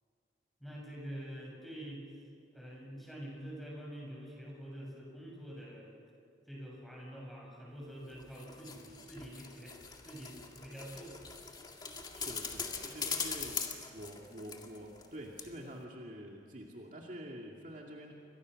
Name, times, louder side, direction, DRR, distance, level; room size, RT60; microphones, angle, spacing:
voice 1, 0.6-2.0 2.5-5.9 6.5-9.8 10.1-11.1, equal, ahead, -3 dB, 7.0 m, -46 dB
sound 1, 8.1-15.1 15.4-15.5, left 5 dB, 25° left, 2.0 m, -41 dB
voice 2, 12.1-18.1, equal, 45° right, -1 dB, 2.4 m, -47 dB
29.5 x 24.5 x 6.5 m, 2.4 s
head